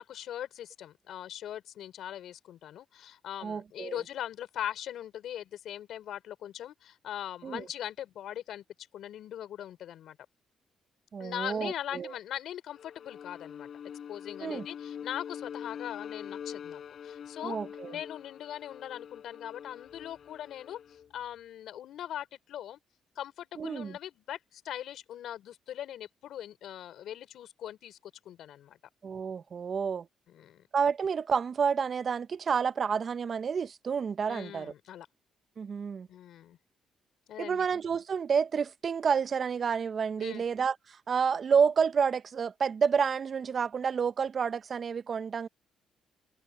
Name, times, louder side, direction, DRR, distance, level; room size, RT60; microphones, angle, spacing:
voice 1, 0.0-8.6 8.9-10.2 11.2-13.7 14.1-17.6 17.9-20.8 21.1-22.8 23.2-28.0 28.2-28.8 30.3-30.6 34.3-35.1 36.1-36.6 37.3-37.7 40.2-40.4, left 11 dB, 75° left, 4.4 m, -40 dB
voice 2, 3.4-4.0 7.4-7.7 11.1-12.1 14.4-14.7 17.4-18.0 23.6-24.0 29.0-30.1 30.7-34.7 35.6-36.1 37.4-45.5, right 6 dB, 45° right, 0.6 m, -29 dB
Bowed string instrument, 12.7-21.1, left 8 dB, 60° left, 5.5 m, -44 dB
cardioid pair, 90°, 0 cm